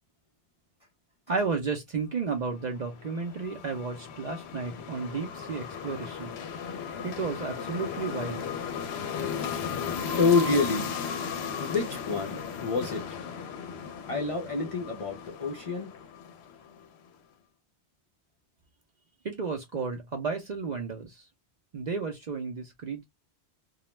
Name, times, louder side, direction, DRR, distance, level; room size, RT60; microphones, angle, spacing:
voice 1, 1.3-6.3 7.0-8.5 19.2-21.3 21.7-23.0, right 4 dB, 50° right, 0.5 m, -33 dB
sound 1, 2.5-16.9, left 6 dB, 70° left, 0.8 m, -36 dB
voice 2, 9.8-10.9 11.6-13.2 14.1-15.9, left 4 dB, 45° left, 0.5 m, -28 dB
2.3 x 2.1 x 2.9 m
omnidirectional pair, 1.2 m